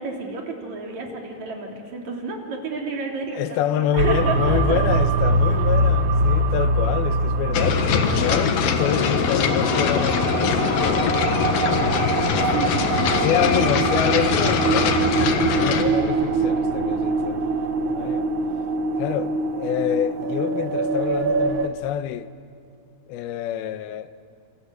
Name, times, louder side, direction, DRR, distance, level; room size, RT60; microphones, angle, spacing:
voice 1, 0.0-5.0 8.2-8.6 12.4-13.7, right 3 dB, 50° right, 4.4 m, -31 dB
voice 2, 3.3-11.1 12.0-12.7 13.2-17.4 17.9-18.3 19.0-22.3 23.1-24.1, left 11 dB, 90° left, 2.8 m, -27 dB
sound 1, 4.0-21.7, right 3 dB, 85° right, 1.1 m, -23 dB
sound 2, 7.5-15.8, left 6 dB, 70° left, 3.0 m, -22 dB
27.5 x 26.5 x 8.1 m
omnidirectional pair, 4.3 m